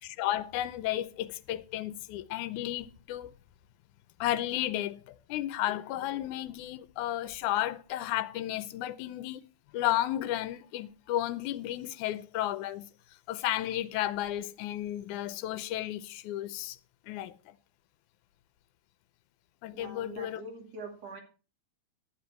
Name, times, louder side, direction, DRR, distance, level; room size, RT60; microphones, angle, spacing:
voice 1, 0.0-3.3 4.2-9.4 9.7-12.9 13.3-16.8 17.1-17.6 19.6-20.4, left 13 dB, 85° left, 2.2 m, -33 dB
voice 2, 19.7-21.2, right 3 dB, 60° right, 3.5 m, -44 dB
12.0 x 9.8 x 4.4 m
omnidirectional pair, 3.4 m